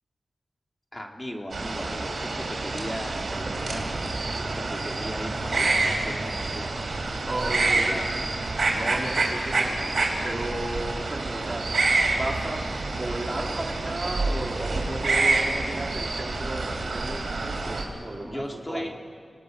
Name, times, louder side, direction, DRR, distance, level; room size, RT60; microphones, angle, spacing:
voice 1, 0.9-3.9 4.5-6.9 7.2-7.3 7.6-8.0 18.2-18.9, equal, 20° left, 1 dB, 3.1 m, -37 dB
sound 1, 1.5-17.8, right 3 dB, 70° right, 4.2 m, -27 dB
voice 2, 7.3-8.0 8.7-11.7 12.1-18.9, right 2 dB, 40° right, 0 dB, 3.5 m, -34 dB
26.5 x 19.5 x 6.7 m, 2.1 s
cardioid pair, 55°, 0 cm